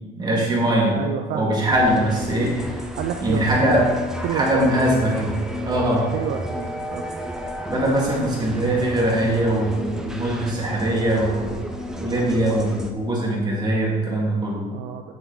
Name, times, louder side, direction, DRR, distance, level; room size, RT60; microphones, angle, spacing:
voice 1, 0.2-1.0 1.3-2.8 3.2-3.8 4.3-6.1 7.6-11.6 12.0-14.6, right 1 dB, 25° right, -3 dB, 2.2 m, -22 dB
voice 2, 0.9-1.8 2.9-3.4 4.2-4.5 6.1-7.0 14.7-15.2, right 9 dB, 85° right, 5 dB, 0.5 m, -29 dB
sound 1, 1.7-12.9, equal, 5° right, 0.7 m, -32 dB
6.5 x 6.1 x 4.0 m, 1.4 s
cardioid pair, 110°, 17 cm